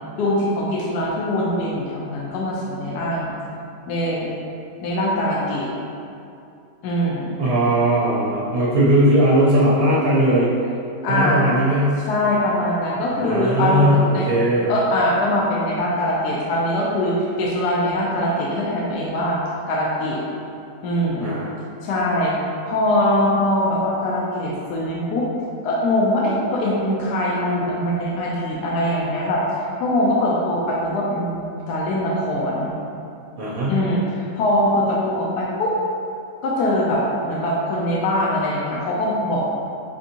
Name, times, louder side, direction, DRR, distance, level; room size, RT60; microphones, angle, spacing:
voice 1, 0.2-3.3 3.9-4.3 4.8-5.7 6.8-7.4 11.0-11.5 12.1-14.3 14.7-19.4 19.7-20.2 20.8-21.4 21.8-22.3 22.7-25.3 25.6-29.4 29.8-32.7 33.7-35.8 36.4-39.5, left 1 dB, 75° left, -4 dB, 1.1 m, -22 dB
voice 2, 7.4-10.5 11.1-12.0 13.1-14.7 21.2-21.5 33.4-33.8, right 1 dB, 60° right, -7 dB, 1.1 m, -18 dB
5.2 x 3.4 x 2.8 m, 2.6 s
omnidirectional pair, 1.8 m